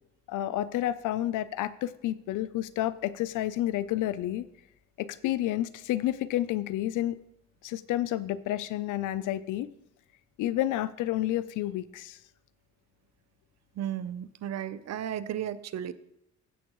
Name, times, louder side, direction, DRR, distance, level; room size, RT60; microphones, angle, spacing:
voice 1, 0.3-4.4 5.0-7.2 7.6-9.7 10.4-12.2, left 13 dB, 85° left, 16 dB, 0.6 m, -30 dB
voice 2, 13.8-15.9, right 10 dB, 60° right, 14 dB, 0.7 m, -34 dB
15.0 x 7.3 x 3.1 m, 0.82 s
cardioid pair, 90°, 30 cm